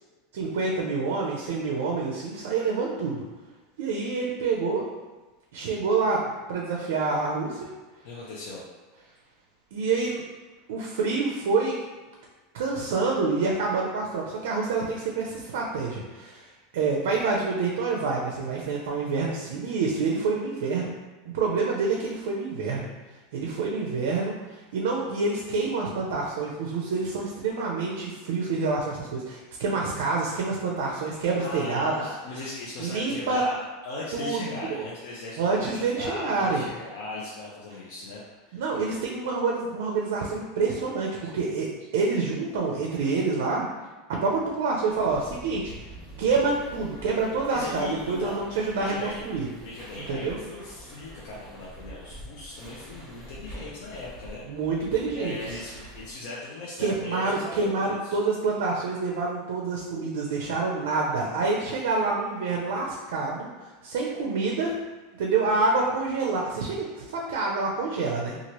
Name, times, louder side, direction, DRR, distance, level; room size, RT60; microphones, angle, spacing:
voice 1, 0.3-3.2 3.8-4.8 5.5-7.6 9.7-10.2 10.7-11.8 12.5-16.5 16.7-20.9 21.3-22.9 23.3-32.0 32.8-33.4 34.1-34.8 35.4-36.6 38.5-41.7 41.9-43.6 44.2-45.7 46.2-49.5 50.1-50.4 54.5-55.6 56.8-63.5 63.8-64.8 65.2-68.3, right 4 dB, 70° right, -1 dB, 0.4 m, -27 dB
voice 2, 8.0-8.6 31.4-38.2 38.5-38.6 47.5-48.4 48.8-49.2 49.6-54.4 55.1-58.2, left 2 dB, 55° left, -6 dB, 0.5 m, -38 dB
sound 1, 44.9-56.1, right 1 dB, 15° right, 1.0 m, -45 dB
2.9 x 2.4 x 2.9 m, 1.3 s
supercardioid pair, 180°, 0 cm